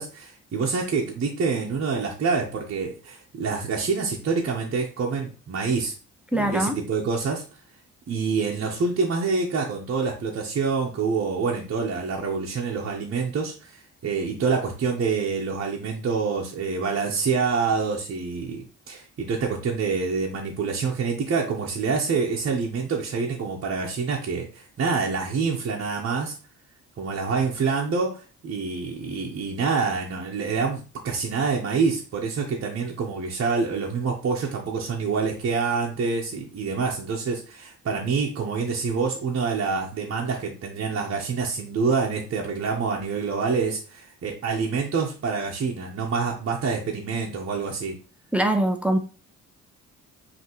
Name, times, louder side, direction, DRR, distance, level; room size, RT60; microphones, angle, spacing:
voice 1, 0.0-5.9 6.3-7.4 8.1-26.3 27.0-48.0, right 5 dB, 50° right, 0.9 m, -26 dB
voice 2, 6.3-6.8 48.3-49.0, right 1 dB, 5° right, 0.5 m, -22 dB
5.5 x 2.9 x 3.0 m
cardioid pair, 90°, 30 cm